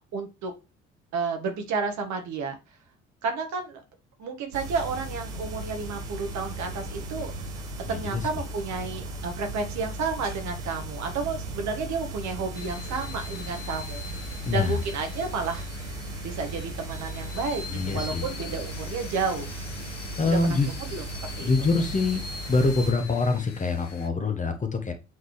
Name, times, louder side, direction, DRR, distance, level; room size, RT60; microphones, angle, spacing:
voice 1, 0.1-0.5 1.1-2.6 3.2-3.8 4.2-7.3 7.9-14.0 14.5-15.6 16.2-19.5 20.2-21.7, right 4 dB, 50° right, 5 dB, 1.5 m, -31 dB
sound 1, 4.5-22.9, right 2 dB, 80° right, 1.0 m, -37 dB
voice 2, 7.8-8.2 14.4-14.8 17.7-18.2 20.2-20.7 21.4-22.2 22.5-24.9, left 3 dB, 20° left, 6 dB, 1.1 m, -25 dB
sound 2, 12.5-24.1, left 5 dB, 90° left, 0.6 m, -42 dB
7.7 x 3.9 x 3.2 m, 0.28 s
figure-of-eight pair, 50°, 35 cm